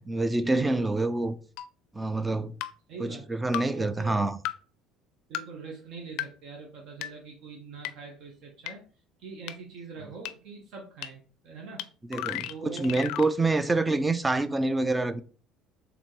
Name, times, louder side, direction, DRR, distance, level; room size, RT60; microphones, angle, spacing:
voice 1, 0.0-1.4 1.9-2.5 3.0-4.4 12.1-15.2, right 2 dB, 10° right, 0.3 m, -27 dB
sound 1, 1.6-1.7 2.6-2.7 3.5-3.6 4.5-4.6 5.3-5.4 6.2-6.3 7.0-7.1 7.8-7.9 8.7-8.8 9.5-9.6 10.3-10.4 11.0-11.1 11.8-11.9 12.1-13.3, left 13 dB, 75° left, 0.4 m, -33 dB
voice 2, 2.9-4.3 5.3-8.8 9.2-11.9 12.5-13.0, right 4 dB, 60° right, 1.1 m, -43 dB
4.2 x 3.5 x 3.1 m
cardioid pair, 135°, 0 cm